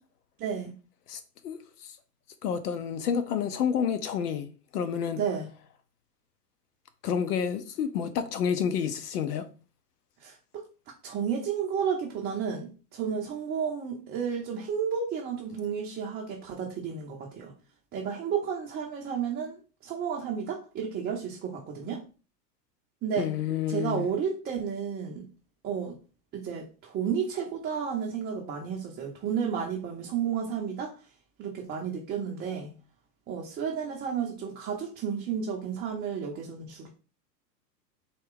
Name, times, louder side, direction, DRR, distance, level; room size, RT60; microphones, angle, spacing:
voice 1, 0.4-0.7 5.2-5.5 10.2-10.6 11.0-17.5 17.9-22.0 23.0-23.3 23.7-25.3 25.6-26.0 26.3-30.9 31.4-32.7 33.3-36.9, right 7 dB, 20° right, 0.7 m, -32 dB
voice 2, 1.1-1.6 2.4-4.5 4.7-5.2 7.0-9.4 23.2-24.1, left 7 dB, 65° left, 0.9 m, -29 dB
4.1 x 2.3 x 3.7 m
hypercardioid pair, 105°, 50 cm